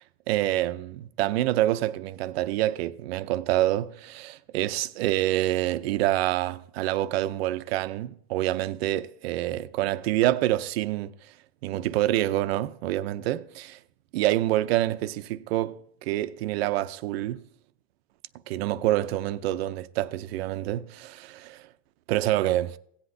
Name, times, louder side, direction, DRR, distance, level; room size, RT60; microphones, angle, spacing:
voice 1, 0.3-11.1 11.6-13.8 14.1-17.4 18.5-21.7 22.1-22.8, right 15 dB, 90° right, 0.7 m, -27 dB
17.5 x 8.0 x 2.7 m
supercardioid pair, 150°, 30 cm